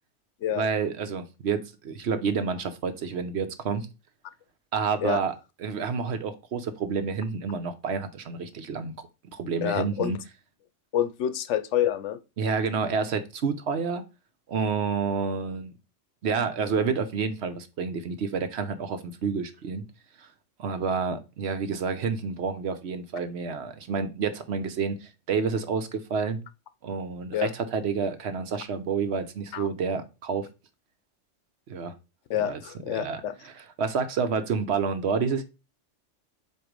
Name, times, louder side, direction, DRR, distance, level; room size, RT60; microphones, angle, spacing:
voice 1, 0.5-3.9 4.7-5.3 5.6-8.9 9.3-10.2 12.4-14.0 14.5-15.7 16.2-19.9 20.2-20.3 20.6-26.4 26.8-30.5 31.7-31.9 32.4-32.6 32.9-35.4, right 5 dB, 65° right, 1.0 m, -29 dB
voice 2, 9.6-10.1 10.9-12.2 27.3-27.5 29.5-29.7 32.3-33.3, left 10 dB, 75° left, 0.9 m, -27 dB
7.8 x 2.6 x 5.1 m
omnidirectional pair, 1.3 m